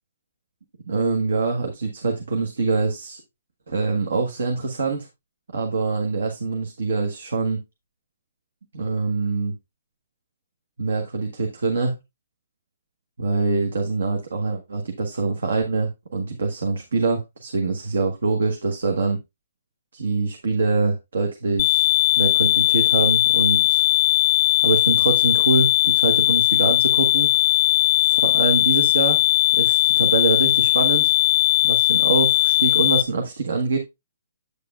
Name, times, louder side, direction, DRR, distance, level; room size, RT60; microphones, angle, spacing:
voice 1, 0.9-3.2 3.7-5.1 5.5-7.6 8.7-9.5 10.8-12.0 13.2-19.2 19.9-21.9 22.2-23.8 24.6-27.5 28.0-29.2 29.5-31.1 31.6-33.8, right 4 dB, 75° right, 1.3 m, -24 dB
sound 1, 21.6-33.0, left 18 dB, 30° left, 0.4 m, -18 dB
8.5 x 6.7 x 2.4 m
hypercardioid pair, 160°, 0 cm